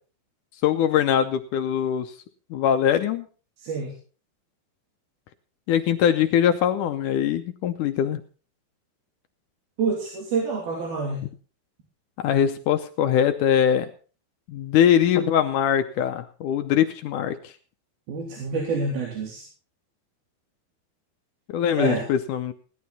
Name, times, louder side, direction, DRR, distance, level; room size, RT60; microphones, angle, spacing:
voice 1, 0.6-2.1 2.5-3.3 5.7-8.2 12.2-13.9 14.5-17.5 21.5-22.5, left 9 dB, 75° left, 8 dB, 2.0 m, -22 dB
voice 2, 3.6-3.9 9.8-11.3 18.1-19.4 21.8-22.1, right 4 dB, 85° right, -2 dB, 5.0 m, -27 dB
17.5 x 11.5 x 4.1 m, 0.37 s
omnidirectional pair, 4.2 m